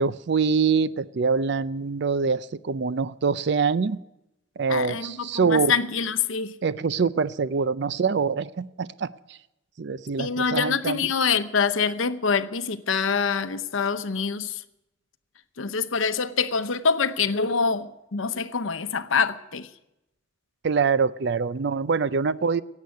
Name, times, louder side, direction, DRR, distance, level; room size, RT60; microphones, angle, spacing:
voice 1, 0.0-4.0 4.6-5.7 6.6-9.4 9.8-11.1 20.6-22.6, right 5 dB, 55° right, 0.4 m, -24 dB
voice 2, 4.7-6.5 10.2-14.6 15.6-19.7, left 5 dB, 75° left, 0.8 m, -25 dB
17.0 x 8.3 x 9.4 m
head